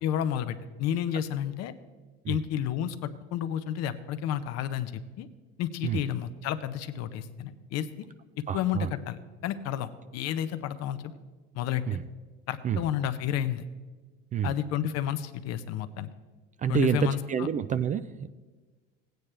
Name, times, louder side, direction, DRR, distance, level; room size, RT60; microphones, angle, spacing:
voice 1, 0.0-1.7 2.3-5.3 5.6-7.9 8.5-11.1 11.5-12.0 12.5-13.6 14.4-16.1 16.7-17.5, left 10 dB, 55° left, 11 dB, 0.8 m, -31 dB
voice 2, 8.5-8.9 11.9-12.0 12.6-12.9 14.3-14.6 16.6-18.3, right 8 dB, 25° right, 13 dB, 0.3 m, -28 dB
16.0 x 9.2 x 3.3 m, 1.3 s
supercardioid pair, 95°, 30 cm